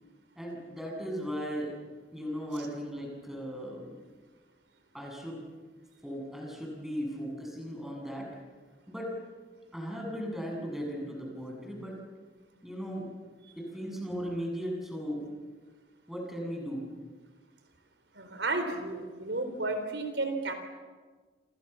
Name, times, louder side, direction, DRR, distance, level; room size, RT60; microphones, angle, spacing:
voice 1, 0.4-1.8 2.1-4.0 4.9-5.4 6.0-8.3 8.9-9.1 9.7-12.0 12.6-13.1 13.6-15.3 16.1-16.9, equal, ahead, 0 dB, 8.0 m, -37 dB
voice 2, 18.1-20.5, right 2 dB, 80° right, 7 dB, 4.1 m, -32 dB
29.0 x 28.5 x 7.2 m, 1.4 s
head